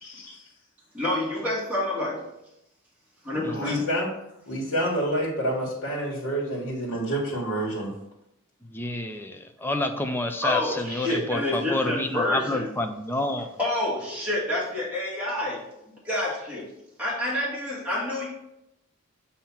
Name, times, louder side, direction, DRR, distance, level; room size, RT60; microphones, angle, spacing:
voice 1, 0.0-0.4 3.3-4.1 4.5-7.9, equal, 80° left, -4 dB, 1.6 m, -28 dB
voice 2, 0.9-2.3 3.2-3.7 10.4-12.7 13.6-15.7 16.0-16.7 17.0-18.3, left 1 dB, 5° right, -7 dB, 1.9 m, -28 dB
voice 3, 3.4-3.8 8.6-13.6, left 1 dB, 10° left, 6 dB, 0.4 m, -29 dB
7.2 x 2.8 x 5.7 m, 0.82 s
head